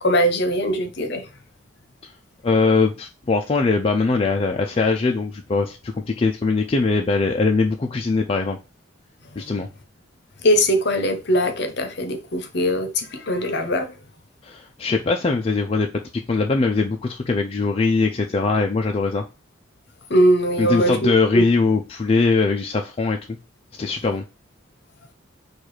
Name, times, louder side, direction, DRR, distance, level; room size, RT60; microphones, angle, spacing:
voice 1, 0.0-1.3 10.4-13.9 20.1-21.4, equal, 55° left, 0.8 m, -21 dB
voice 2, 2.4-8.6 9.4-9.7 14.4-15.9 16.3-19.2 20.6-23.2 23.8-24.2, left 3 dB, 30° left, 0.4 m, -21 dB
4.5 x 2.4 x 4.7 m
head